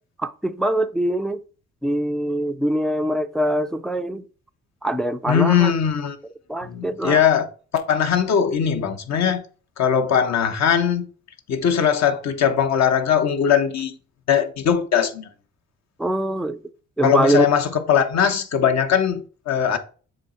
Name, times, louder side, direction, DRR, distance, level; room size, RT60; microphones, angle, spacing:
voice 1, 0.2-1.4 1.8-4.3 4.8-5.7 6.5-7.2 16.0-16.6 17.0-17.5, right 1 dB, ahead, 0.3 m, -23 dB
voice 2, 5.3-6.2 6.6-7.5 7.7-9.4 9.8-11.1 11.5-13.9 14.3-15.3 17.0-19.8, left 8 dB, 60° left, 1.0 m, -20 dB
7.5 x 3.1 x 4.3 m
cardioid pair, 90°, 30 cm